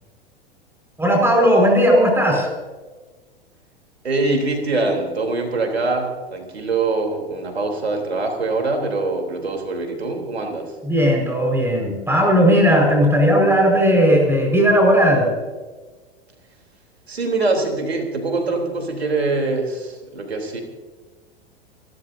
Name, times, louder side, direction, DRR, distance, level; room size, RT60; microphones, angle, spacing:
voice 1, 1.0-2.5 10.8-15.3, equal, 10° right, 0 dB, 5.0 m, -16 dB
voice 2, 4.0-10.7 17.1-20.6, right 3 dB, 85° right, 2 dB, 3.5 m, -23 dB
29.5 x 13.0 x 2.7 m, 1.3 s
figure-of-eight pair, 90°, 31 cm